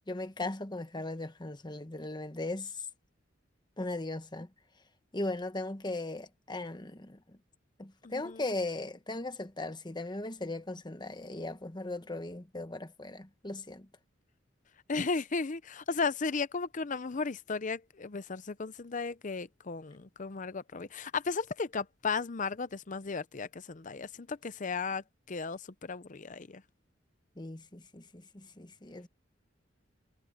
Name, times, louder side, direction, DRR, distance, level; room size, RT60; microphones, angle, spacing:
voice 1, 0.1-2.8 3.8-4.5 5.1-7.4 7.8-13.9 27.4-29.1, left 2 dB, 25° left, 1.3 m, -38 dB
voice 2, 8.0-8.4 14.9-26.6, left 4 dB, 40° left, 0.7 m, -35 dB
head